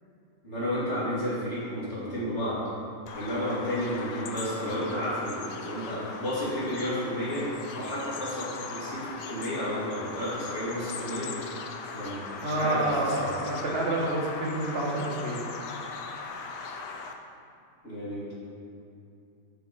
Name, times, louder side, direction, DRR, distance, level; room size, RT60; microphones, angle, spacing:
voice 1, 0.4-2.6 3.1-7.4 7.7-11.3 11.9-13.3 17.8-18.3, equal, 40° left, -8 dB, 2.5 m, -32 dB
Bird vocalization bird call bird song, 3.1-17.1, left 4 dB, 80° left, 1.3 m, -39 dB
voice 2, 12.4-15.4, right 1 dB, 40° right, -4 dB, 1.5 m, -28 dB
7.6 x 5.8 x 5.1 m, 2.6 s
omnidirectional pair, 1.8 m